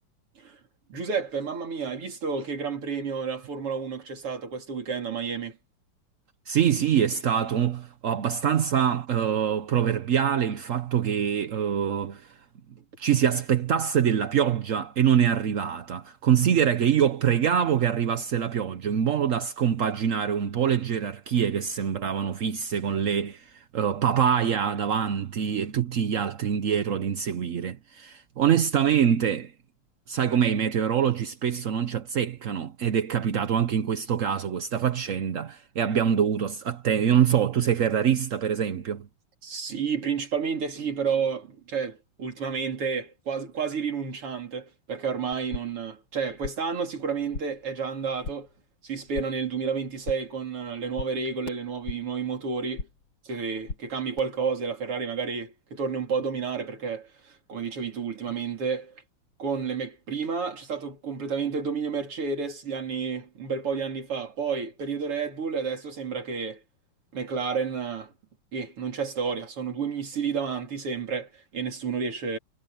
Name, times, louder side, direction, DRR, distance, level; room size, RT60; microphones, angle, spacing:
voice 1, 0.9-5.6 39.4-48.5 48.8-52.9 53.3-59.0 59.4-66.6 67.1-68.1 68.5-72.4, right 5 dB, 90° right, 4.4 m, -31 dB
voice 2, 6.5-12.3 13.0-29.5 30.1-39.1, right 8 dB, 60° right, 0.8 m, -24 dB
sound 1, 45.3-45.9 46.1-46.8 47.1-47.7 48.0-48.6 48.9-49.5 49.8-50.4 50.7-52.2 52.5-53.1 53.4-54.2, left 4 dB, 65° left, 3.2 m, -40 dB
omnidirectional pair, 2.4 m